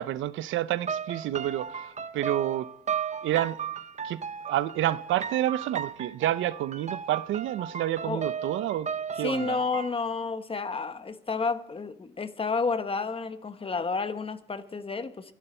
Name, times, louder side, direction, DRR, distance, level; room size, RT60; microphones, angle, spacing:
voice 1, 0.0-2.7 3.2-3.6 4.0-8.9 9.2-9.6, right 13 dB, 80° right, 0.6 m, -29 dB
sound 1, 0.8-9.9, right 7 dB, 35° right, 0.7 m, -35 dB
voice 2, 9.2-15.3, left 4 dB, 30° left, 1.2 m, -31 dB
24.0 x 11.5 x 4.4 m
cardioid pair, 90°, 20 cm